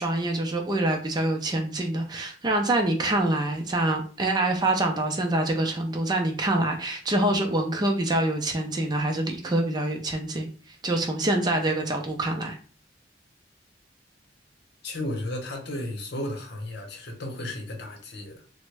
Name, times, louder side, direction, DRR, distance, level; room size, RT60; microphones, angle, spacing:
voice 1, 0.0-12.6, right 1 dB, 20° right, 0.4 m, -26 dB
voice 2, 14.8-18.4, left 1 dB, 60° left, 0.8 m, -34 dB
3.4 x 2.1 x 3.2 m
head